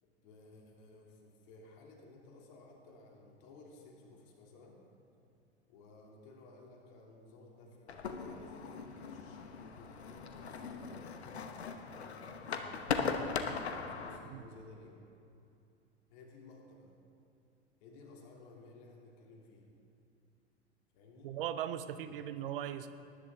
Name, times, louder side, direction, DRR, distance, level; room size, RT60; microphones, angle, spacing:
voice 1, 0.0-4.8 5.7-11.1 11.9-12.9 13.2-15.0 16.1-16.9 17.8-19.7 20.9-21.3 21.9-22.2, left 2 dB, 45° left, -1 dB, 2.8 m, -56 dB
sound 1, 7.9-14.2, left 5 dB, 70° left, 1.0 m, -39 dB
voice 2, 21.2-22.9, right 10 dB, 55° right, 11 dB, 0.7 m, -38 dB
19.5 x 10.5 x 3.7 m, 2.6 s
figure-of-eight pair, 85°, 34 cm